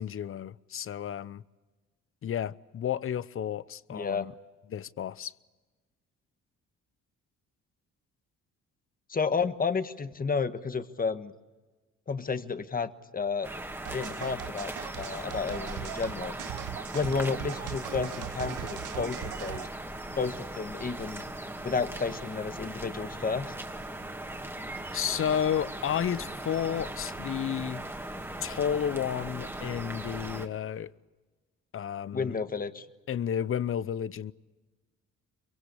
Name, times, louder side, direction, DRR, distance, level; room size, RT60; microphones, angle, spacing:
voice 1, 0.0-1.4 2.2-4.3 4.7-5.3 24.9-27.8 28.4-30.9 31.7-32.4 33.1-34.3, left 9 dB, 45° left, 0.7 m, -32 dB
voice 2, 3.9-4.3 9.1-11.3 12.1-13.5 13.9-16.3 16.9-19.7 20.2-21.2 21.6-23.5 32.1-32.9, left 5 dB, 30° left, 1.4 m, -31 dB
sound 1, 13.4-30.5, right 1 dB, 10° right, 2.3 m, -39 dB
sound 2, 13.9-19.7, right 13 dB, 85° right, 0.8 m, -40 dB
24.0 x 23.0 x 8.4 m
cardioid pair, 90°, 30 cm